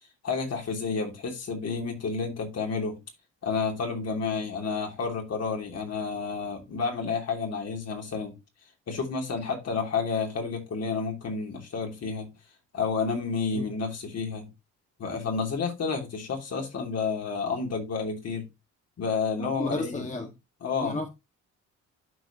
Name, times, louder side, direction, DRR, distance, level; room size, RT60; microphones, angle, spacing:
voice 1, 0.2-3.0 3.4-8.3 8.9-12.3 12.7-14.5 15.0-18.5 19.0-20.1 20.6-21.0, left 5 dB, 55° left, 3.0 m, -30 dB
voice 2, 19.4-20.3 20.8-21.1, left 3 dB, 25° left, 1.7 m, -32 dB
12.0 x 4.7 x 2.9 m
cardioid pair, 90°, 30 cm